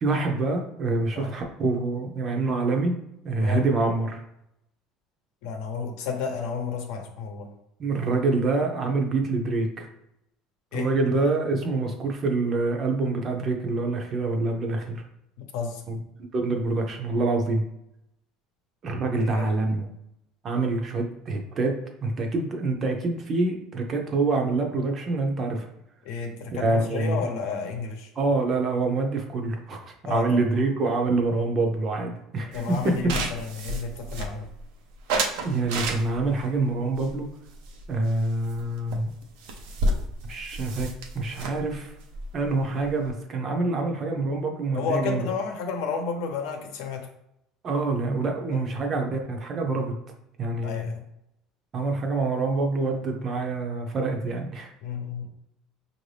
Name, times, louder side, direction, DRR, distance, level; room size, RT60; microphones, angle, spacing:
voice 1, 0.0-3.0 3.2-4.2 7.8-9.9 10.7-15.0 15.9-16.0 16.3-17.6 18.8-19.9 20.4-21.8 22.0-25.7 26.5-27.3 28.2-33.1 35.4-37.3 37.9-39.1 40.3-40.9 41.1-41.9 42.3-45.3 47.6-49.9 50.4-50.9 51.7-54.7, right 3 dB, 30° right, 3 dB, 0.6 m, -26 dB
voice 2, 5.4-7.5 10.7-10.9 15.4-15.8 19.3-19.5 26.0-28.1 30.0-30.4 32.5-34.5 44.7-47.1 48.5-48.6 50.6-51.0 54.8-55.3, left 5 dB, 80° left, 3 dB, 0.8 m, -31 dB
sound 1, 32.5-34.6 35.1-36.4 37.0-38.2 38.5-38.6 38.9-39.0 39.2-43.1, right 2 dB, 85° right, 0.6 m, -31 dB
5.4 x 2.6 x 3.3 m, 0.80 s
cardioid pair, 165°, 0 cm